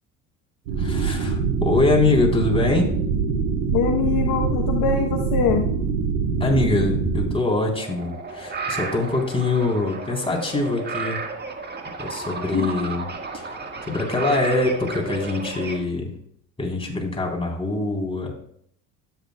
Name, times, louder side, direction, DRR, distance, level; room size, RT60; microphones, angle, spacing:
sound 1, 0.7-7.3, right 5 dB, 80° right, 3.4 m, -24 dB
voice 1, 0.8-2.9 6.4-11.2 12.0-13.1 13.3-13.5 13.9-16.1 16.6-18.3, left 2 dB, 15° left, -1 dB, 3.8 m, -23 dB
voice 2, 3.7-5.7 12.5-12.7, left 7 dB, 55° left, 4 dB, 1.0 m, -23 dB
sound 2, 7.8-15.8, right 4 dB, 25° right, 1.7 m, -33 dB
13.0 x 9.0 x 2.3 m, 0.64 s
hypercardioid pair, 65°, 39 cm